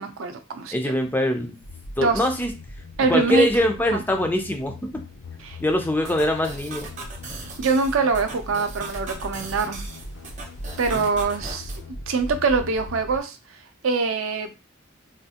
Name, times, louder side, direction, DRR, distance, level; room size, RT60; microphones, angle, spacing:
voice 1, 0.0-0.9 2.0-2.2 3.0-3.5 3.9-4.0 5.4-5.6 7.6-9.8 10.8-11.7 12.1-13.4 13.8-14.5, right 4 dB, 70° right, 7 dB, 0.5 m, -24 dB
voice 2, 0.7-1.6 2.0-2.5 3.1-4.9 5.6-6.9 10.9-11.1, left 1 dB, 10° left, 4 dB, 0.3 m, -23 dB
sound 1, 1.6-13.2, left 1 dB, 85° left, 0.5 m, -39 dB
sound 2, 6.0-11.8, right 3 dB, 35° right, 0.7 m, -39 dB
3.4 x 2.3 x 2.8 m, 0.29 s
head